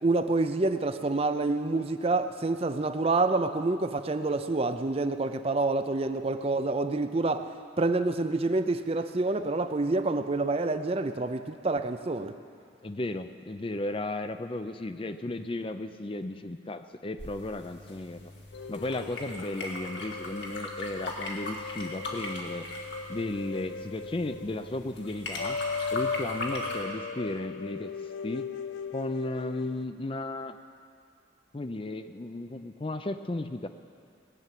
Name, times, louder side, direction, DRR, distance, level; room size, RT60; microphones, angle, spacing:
voice 1, 0.0-7.5 7.8-12.3, right 2 dB, 30° right, 9 dB, 0.5 m, -27 dB
voice 2, 12.8-18.2 18.7-22.7 23.1-25.6 25.9-27.9 28.2-28.5 28.9-30.6 31.5-33.7, left 2 dB, 30° left, 9 dB, 0.5 m, -35 dB
sound 1, 17.2-26.8, left 2 dB, 70° left, 2.1 m, -39 dB
sound 2, 18.5-29.9, left 5 dB, 90° left, 0.6 m, -38 dB
19.0 x 7.1 x 9.2 m, 2.3 s
head